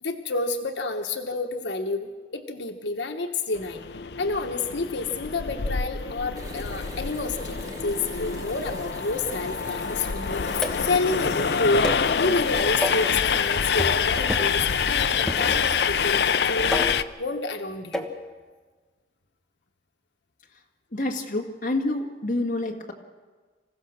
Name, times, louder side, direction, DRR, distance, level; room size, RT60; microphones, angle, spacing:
voice 1, 0.0-3.8 4.2-11.8 12.2-18.1, left 3 dB, 90° left, 4 dB, 1.2 m, -29 dB
Train, 3.6-17.0, left 7 dB, 65° left, 0.5 m, -26 dB
sound 1, 6.4-15.6, right 1 dB, 20° right, 1.9 m, -41 dB
sound 2, 10.6-11.0 11.8-12.1 12.8-13.1 13.8-14.0 14.3-14.6 15.3-15.9 16.7-17.1 17.9-18.2, left 1 dB, 5° left, 1.3 m, -30 dB
voice 2, 20.9-22.9, left 2 dB, 45° left, 2 dB, 2.0 m, -28 dB
27.0 x 15.5 x 6.5 m, 1.4 s
head